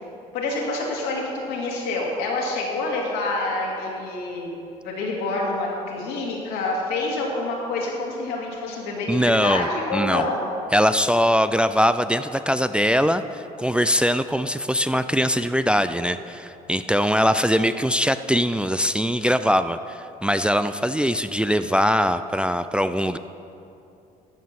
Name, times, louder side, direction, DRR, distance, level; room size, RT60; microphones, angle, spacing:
voice 1, 0.3-10.4, left 2 dB, 85° left, -2 dB, 2.3 m, -27 dB
voice 2, 9.1-10.3 10.7-23.2, equal, 5° right, 11 dB, 0.3 m, -22 dB
14.0 x 5.5 x 5.9 m, 2.7 s
supercardioid pair, 75°, 17 cm